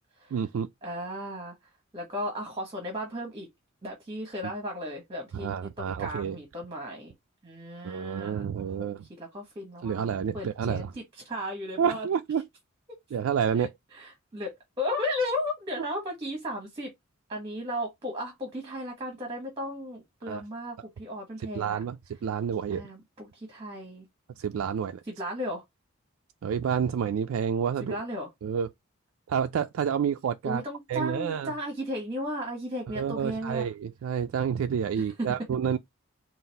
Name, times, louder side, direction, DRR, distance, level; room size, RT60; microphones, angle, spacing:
voice 1, 0.3-0.7 5.3-6.4 7.8-9.0 9.8-10.9 11.8-12.4 13.1-13.7 15.8-15.9 20.3-20.4 21.5-22.9 24.4-25.0 26.4-28.0 28.4-28.7 29.3-30.6 30.9-31.5 32.9-35.8, right 7 dB, 70° right, 0.3 m, -29 dB
voice 2, 0.8-1.5 1.9-3.5 3.8-5.5 5.8-7.1 7.4-8.9 9.2-10.1 10.3-12.1 13.5-16.9 17.3-21.8 22.7-24.1 25.1-25.6 27.8-28.3 30.4-33.7 35.0-35.3, equal, 25° right, 1.1 m, -35 dB
4.0 x 2.5 x 3.8 m
head